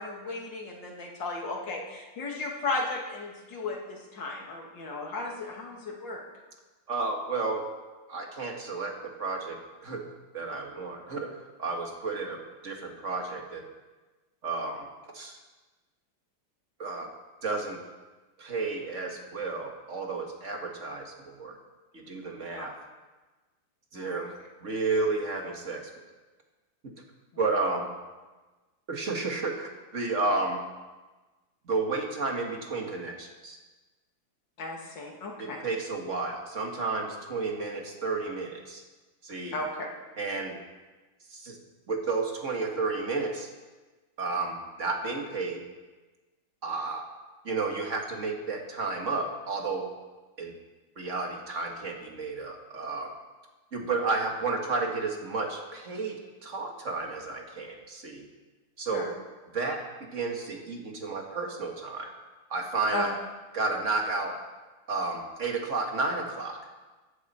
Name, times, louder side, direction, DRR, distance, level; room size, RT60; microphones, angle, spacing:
voice 1, 0.0-6.2 22.6-22.7 23.9-24.3 34.6-35.6 39.5-39.9 58.9-59.1 62.9-63.1, left 2 dB, 65° left, 0 dB, 2.7 m, -35 dB
voice 2, 6.9-7.7 8.1-8.9 9.2-10.0 10.3-13.6 14.4-14.9 15.1-15.4 16.8-17.1 17.4-17.8 18.4-21.6 21.9-22.7 23.9-24.3 24.6-25.8 27.4-27.9 28.9-30.6 31.7-33.6 35.4-38.8 39.2-39.5 40.2-40.6 41.3-41.6 41.9-43.5 44.2-45.6 46.6-47.1 47.4-49.9 50.4-50.5 51.0-53.1 53.7-58.2 58.8-59.1 59.5-59.8 60.1-62.1 62.5-63.2 63.5-64.4 64.9-66.6, right 3 dB, 40° right, 2 dB, 1.9 m, -32 dB
15.5 x 11.0 x 4.3 m, 1.2 s
omnidirectional pair, 2.2 m